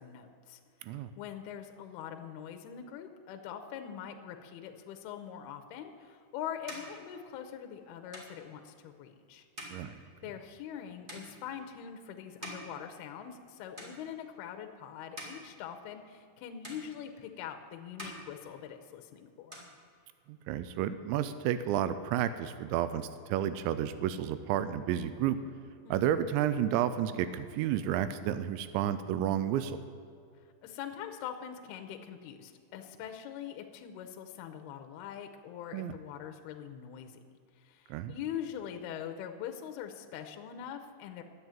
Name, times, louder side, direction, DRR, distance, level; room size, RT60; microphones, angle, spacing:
voice 1, 0.0-9.5 9.7-9.9 10.2-19.7 25.8-26.1 30.6-37.2 37.5-41.2, left 9 dB, 85° left, 6 dB, 2.3 m, -43 dB
sound 1, 5.8-13.5 13.7-14.4 14.9-16.4 16.6-17.5 17.8-19.0 19.3-20.4, equal, 55° right, 0.5 m, -49 dB
voice 2, 20.3-25.4 25.9-29.8 35.7-35.9 37.9-38.1, right 10 dB, 85° right, 12 dB, 2.8 m, -31 dB
10.5 x 8.1 x 8.9 m, 2.4 s
omnidirectional pair, 5.3 m